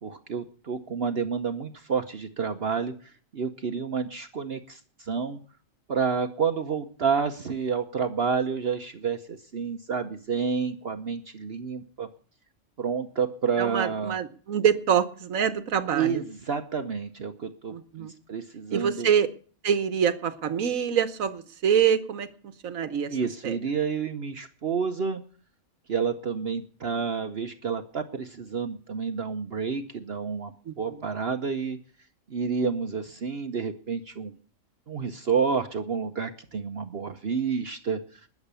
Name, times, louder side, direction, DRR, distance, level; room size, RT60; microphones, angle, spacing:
voice 1, 0.0-2.9 3.3-5.4 5.9-12.1 12.8-14.2 15.9-19.1 23.1-25.2 25.9-31.8 32.3-34.3 34.9-38.2, right 6 dB, 50° right, 7 dB, 1.1 m, -29 dB
voice 2, 13.6-16.2 17.7-18.1 18.7-19.3 19.6-22.3 22.6-23.2 23.4-23.6 30.7-31.0, right 8 dB, 80° right, 12 dB, 1.4 m, -25 dB
20.0 x 7.2 x 6.8 m, 0.43 s
omnidirectional pair, 1.4 m